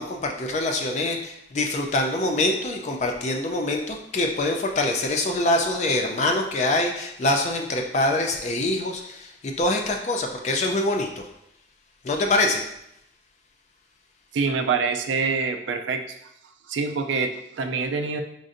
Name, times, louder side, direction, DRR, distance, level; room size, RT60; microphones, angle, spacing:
voice 1, 0.0-11.2 12.0-12.7, left 2 dB, 40° left, 3 dB, 0.3 m, -24 dB
voice 2, 14.3-16.2 16.7-18.2, right 4 dB, 90° right, 6 dB, 0.4 m, -25 dB
5.2 x 2.5 x 2.5 m, 0.79 s
head